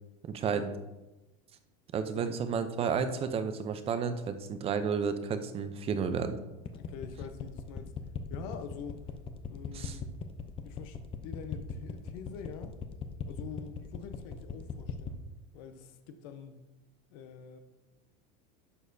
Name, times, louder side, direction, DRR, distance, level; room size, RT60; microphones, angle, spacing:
voice 1, 0.3-0.7 1.9-6.4 9.7-10.0, right 6 dB, 30° right, 9 dB, 0.7 m, -32 dB
voice 2, 6.7-7.9 8.3-9.1 9.5-10.2 10.6-11.0 11.2-12.8 13.3-16.6 17.1-17.6, left 7 dB, 65° left, 8 dB, 0.9 m, -45 dB
sound 1, 6.7-15.2, left 7 dB, 30° left, 0.6 m, -38 dB
11.0 x 6.3 x 2.7 m, 1.1 s
supercardioid pair, 130°, 20 cm